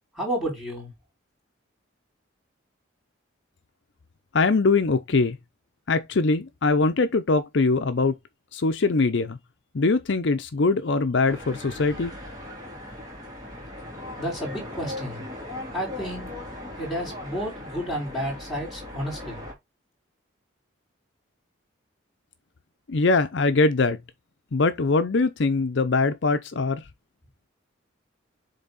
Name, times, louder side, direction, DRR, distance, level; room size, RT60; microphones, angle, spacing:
voice 1, 0.1-0.9 14.2-15.3 15.7-16.3 16.8-19.4, equal, ahead, 4.3 m, -31 dB
voice 2, 4.3-5.4 5.9-8.1 8.5-9.4 9.7-12.1 22.9-24.0 24.5-26.8, left 3 dB, 60° left, 0.6 m, -22 dB
sound 1, 11.3-19.5, left 1 dB, 20° right, 2.4 m, -38 dB
7.7 x 3.4 x 3.9 m
head